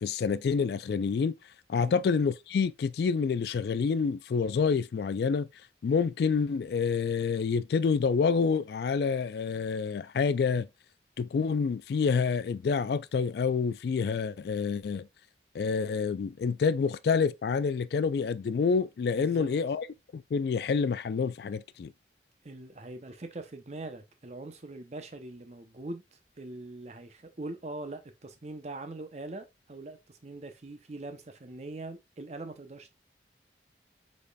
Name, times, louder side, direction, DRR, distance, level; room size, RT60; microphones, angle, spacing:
voice 1, 0.0-1.3 1.7-5.5 5.8-10.7 11.2-15.1 15.5-19.9 20.1-21.9, left 5 dB, 65° left, 0.3 m, -28 dB
voice 2, 19.1-19.5 22.4-32.9, right 2 dB, 40° right, 0.7 m, -42 dB
5.2 x 4.2 x 2.3 m
head